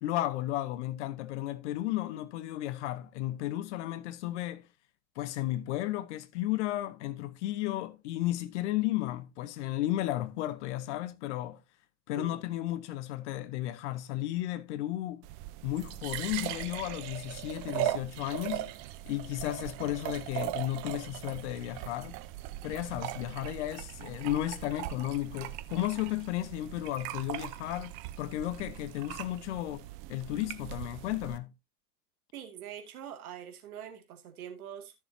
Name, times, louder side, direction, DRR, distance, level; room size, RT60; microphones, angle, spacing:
voice 1, 0.0-4.7 5.2-11.6 12.1-15.3 15.6-18.7 19.1-22.2 22.6-31.5, left 15 dB, 45° left, 0.9 m, -34 dB
sound 1, 15.2-31.4, right 14 dB, 30° right, 0.7 m, -39 dB
voice 2, 32.3-34.9, right 9 dB, 60° right, 2.4 m, -44 dB
14.0 x 6.7 x 2.7 m
figure-of-eight pair, 100°, 50 cm